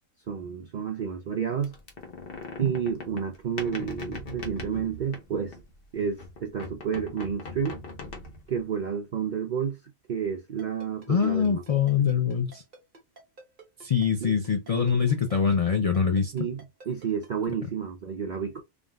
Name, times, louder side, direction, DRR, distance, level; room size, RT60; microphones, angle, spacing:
voice 1, 0.3-1.7 2.6-5.6 5.9-7.8 8.5-9.8 10.1-11.6 12.0-12.1 14.2-14.3 16.3-18.6, right 7 dB, 70° right, 0.4 m, -30 dB
sound 1, 1.6-5.8 6.2-8.6, left 2 dB, 50° left, 1.0 m, -40 dB
Ringtone, 10.6-17.3, right 3 dB, 40° right, 1.2 m, -49 dB
voice 2, 11.1-12.6 13.8-16.3, left 7 dB, 70° left, 0.3 m, -24 dB
3.4 x 2.5 x 2.2 m
omnidirectional pair, 1.4 m